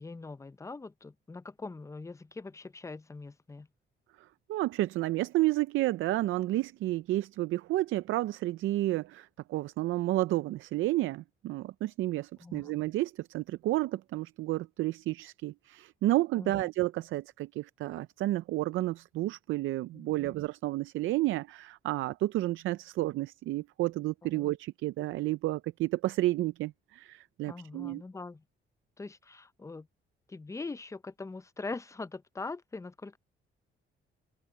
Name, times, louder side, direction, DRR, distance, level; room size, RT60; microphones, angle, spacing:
voice 1, 0.0-3.7 12.4-12.7 16.4-16.6 19.9-20.3 24.3-24.5 27.5-28.4 29.0-29.9 30.3-33.2, left 3 dB, 15° left, 0.6 m, -42 dB
voice 2, 4.5-28.0, right 16 dB, 80° right, 0.5 m, -31 dB
open air
cardioid pair, 90°, 20 cm